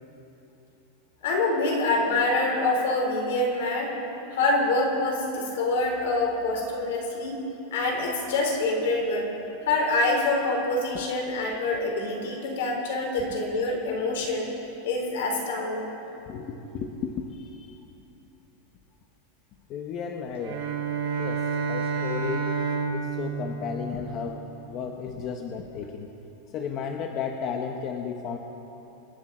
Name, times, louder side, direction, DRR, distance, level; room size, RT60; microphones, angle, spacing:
voice 1, 1.2-3.9 4.3-7.4 7.7-9.3 9.6-14.5 14.8-15.9, left 2 dB, 75° left, 0 dB, 4.1 m, -26 dB
voice 2, 16.2-17.8 19.7-20.7 21.2-22.5 22.9-26.1 26.5-28.4, left 6 dB, 35° left, 3 dB, 0.9 m, -34 dB
Bowed string instrument, 20.3-24.7, right 5 dB, 75° right, 4.3 m, -30 dB
26.0 x 10.0 x 4.3 m, 2.9 s
supercardioid pair, 160°, 0 cm